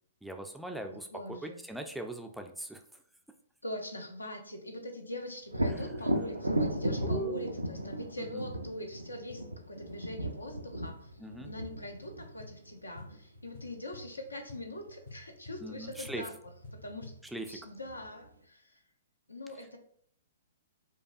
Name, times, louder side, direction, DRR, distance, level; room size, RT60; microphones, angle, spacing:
voice 1, 0.2-2.8 5.6-5.9 7.0-7.5 8.3-8.4 11.2-11.5 15.6-16.2 17.3-17.6, right 1 dB, ahead, 4 dB, 0.3 m, -40 dB
voice 2, 0.8-1.6 3.6-11.1 11.4-16.3 16.7-17.2 17.5-18.8 19.3-19.8, left 1 dB, 85° left, 4 dB, 0.7 m, -43 dB
Thunder, 5.5-13.2 16.8-16.9 17.4-18.3, right 1 dB, 85° right, 0.4 m, -35 dB
sound 1, 5.6-17.3, left 2 dB, 65° left, 1.2 m, -53 dB
4.8 x 2.3 x 2.5 m, 0.63 s
figure-of-eight pair, 115°, 0 cm